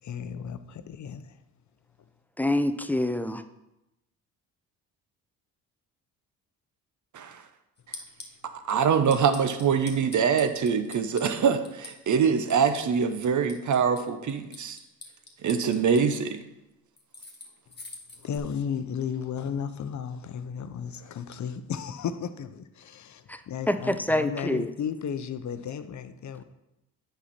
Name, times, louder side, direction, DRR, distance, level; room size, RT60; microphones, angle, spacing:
voice 1, 0.0-1.3 18.2-26.4, left 7 dB, 45° left, 0.7 m, -34 dB
voice 2, 2.4-3.4 23.3-23.4 23.7-24.7, left 1 dB, 5° left, 0.5 m, -26 dB
sound 1, 7.8-8.3 8.7-8.8 9.1-11.2 11.6-12.1 12.5-14.0 14.3-16.0 17.0-18.4, left 3 dB, 25° left, 2.0 m, -43 dB
voice 3, 8.7-14.8 15.4-16.4, right 6 dB, 45° right, 0.9 m, -24 dB
8.1 x 5.7 x 4.3 m
hypercardioid pair, 55°, 42 cm